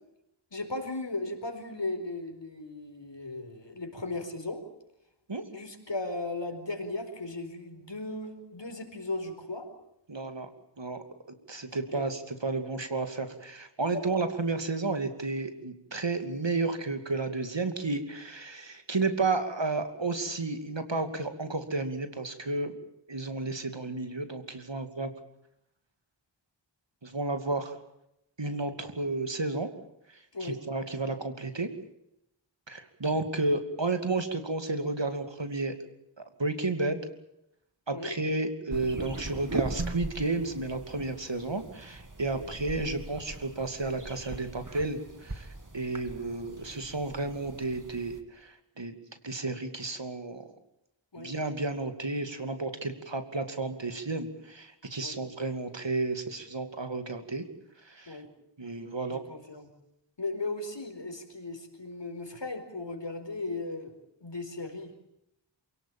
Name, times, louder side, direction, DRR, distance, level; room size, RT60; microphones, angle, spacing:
voice 1, 0.5-4.6 5.5-9.7 11.9-12.0 13.9-14.0 30.3-30.6 37.9-38.1 42.3-42.5 51.1-51.3 55.0-55.2 58.1-58.3 59.1-59.7 60.2-63.9 64.2-64.9, left 2 dB, 65° left, 6 dB, 4.7 m, -36 dB
voice 2, 10.1-10.5 10.8-11.0 11.5-22.8 23.1-25.1 27.0-27.8 28.4-29.7 30.4-31.7 32.7-35.7 36.4-37.0 37.9-48.9 49.2-50.4 51.2-57.4 57.9-58.2 58.6-59.2, right 3 dB, 70° right, 8 dB, 2.7 m, -32 dB
sound 1, 38.7-48.2, right 2 dB, 40° right, 2.5 m, -40 dB
28.0 x 18.0 x 9.0 m, 0.83 s
wide cardioid pair, 45°, 46 cm